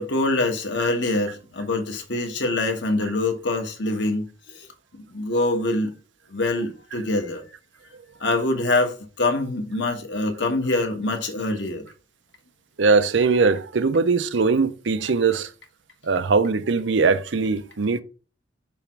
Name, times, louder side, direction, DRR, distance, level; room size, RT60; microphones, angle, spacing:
voice 1, 0.0-4.3 4.5-4.7 5.1-5.9 6.3-7.4 8.2-11.9, left 2 dB, 65° left, 1.4 m, -24 dB
voice 2, 12.8-15.5 16.0-18.0, right 4 dB, 75° right, 0.6 m, -20 dB
7.0 x 3.1 x 5.8 m
head